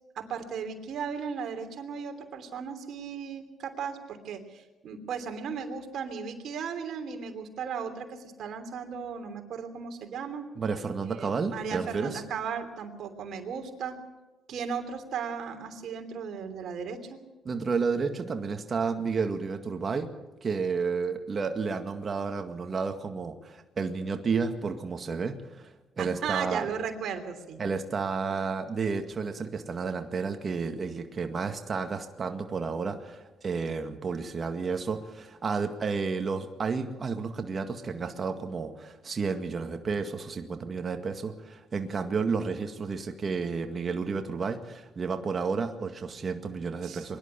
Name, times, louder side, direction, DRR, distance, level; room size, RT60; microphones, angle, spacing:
voice 1, 0.1-10.4 11.1-13.9 14.5-17.2 26.0-27.6 46.8-47.1, right 6 dB, 70° right, 5 dB, 3.1 m, -36 dB
voice 2, 10.6-12.2 17.5-20.1 20.4-26.7 27.6-47.2, right 5 dB, 40° right, 5 dB, 1.9 m, -31 dB
23.5 x 11.5 x 9.8 m, 1.1 s
cardioid pair, 90°, 0 cm